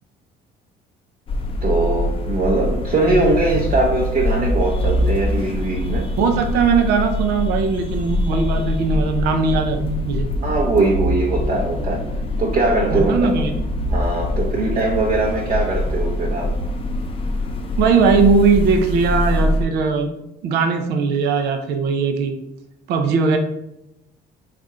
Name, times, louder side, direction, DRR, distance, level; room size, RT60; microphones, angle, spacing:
sound 1, 1.3-19.6, left 1 dB, 35° left, 0.6 m, -23 dB
voice 1, 1.6-6.0 10.4-12.0 12.4-13.1 13.9-16.5, right 3 dB, 40° right, -2 dB, 0.7 m, -21 dB
voice 2, 6.2-10.3 12.9-13.5 17.8-20.1 20.4-22.3 22.9-23.4, right 5 dB, 80° right, 5 dB, 0.5 m, -19 dB
3.7 x 2.5 x 4.2 m, 0.88 s
cardioid pair, 110°, 17 cm